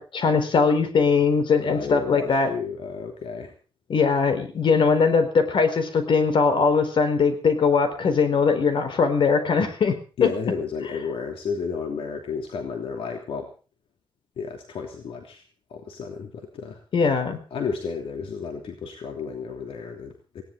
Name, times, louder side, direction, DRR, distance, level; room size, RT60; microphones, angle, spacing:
voice 1, 0.0-2.5 3.9-10.3 16.9-17.4, left 5 dB, 65° left, 9 dB, 4.4 m, -21 dB
voice 2, 1.6-3.5 10.2-13.5 14.4-15.4 15.7-16.8 17.5-20.4, left 5 dB, 80° left, 4 dB, 3.1 m, -32 dB
20.0 x 17.5 x 3.9 m, 0.37 s
wide cardioid pair, 135°, 9 cm